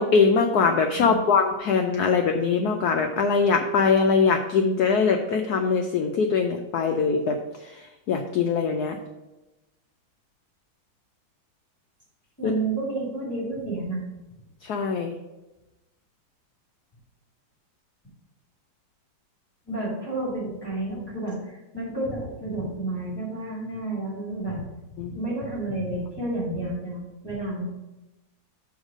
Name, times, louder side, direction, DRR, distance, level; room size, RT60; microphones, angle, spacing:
voice 1, 0.0-7.4 8.1-9.0 12.4-12.5 14.6-15.1 25.0-25.1, left 5 dB, 85° left, 4 dB, 0.8 m, -22 dB
voice 2, 12.4-14.0 19.7-24.6 25.1-27.6, right 2 dB, 10° left, -8 dB, 2.0 m, -30 dB
6.4 x 3.6 x 6.1 m, 1.0 s
omnidirectional pair, 2.3 m